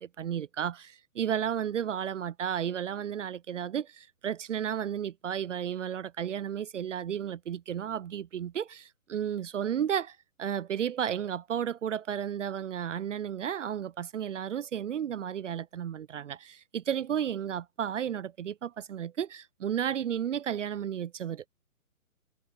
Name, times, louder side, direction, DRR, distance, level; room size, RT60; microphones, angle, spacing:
voice 1, 0.0-21.4, right 9 dB, 55° right, 0.7 m, -33 dB
hypercardioid pair, 145°, 44 cm